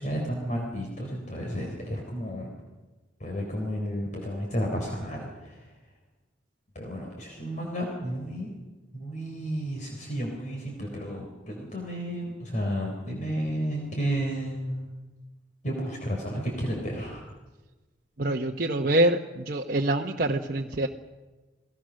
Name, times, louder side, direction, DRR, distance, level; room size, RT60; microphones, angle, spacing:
voice 1, 0.0-2.5 3.2-5.7 6.7-8.5 8.9-14.9 15.6-17.2, equal, 45° left, 0 dB, 4.1 m, -32 dB
voice 2, 18.2-20.9, right 1 dB, 50° right, 0 dB, 1.1 m, -25 dB
29.0 x 19.0 x 6.5 m, 1.2 s
head